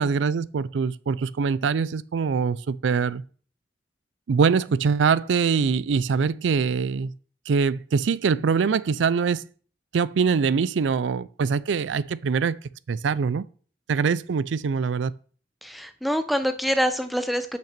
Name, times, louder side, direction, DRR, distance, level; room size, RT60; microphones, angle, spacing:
voice 1, 0.0-3.2 4.3-7.1 7.5-9.4 9.9-12.6 12.9-13.4 13.9-15.1, right 5 dB, 80° right, 0.4 m, -23 dB
voice 2, 15.6-17.6, equal, ahead, 0.6 m, -25 dB
6.0 x 5.9 x 6.6 m
head